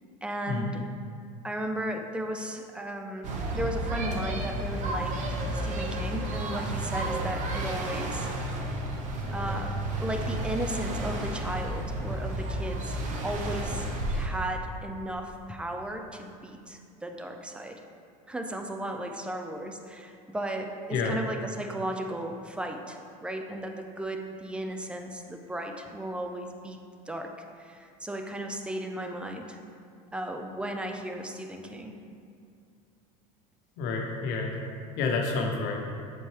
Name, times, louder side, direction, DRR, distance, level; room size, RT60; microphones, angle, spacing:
voice 1, 0.2-0.9 1.4-5.2 5.5-8.3 9.3-9.7 10.0-13.0 13.2-17.8 18.3-26.8 27.1-27.3 27.6-29.6 30.1-31.9, right 1 dB, 5° right, 4 dB, 0.4 m, -35 dB
sound 1, 3.2-14.3, right 1 dB, 40° right, 0.8 m, -32 dB
voice 2, 33.8-34.5 35.0-35.9, left 4 dB, 60° left, 1 dB, 0.9 m, -29 dB
6.9 x 4.3 x 3.2 m, 2.4 s
supercardioid pair, 130°, 19 cm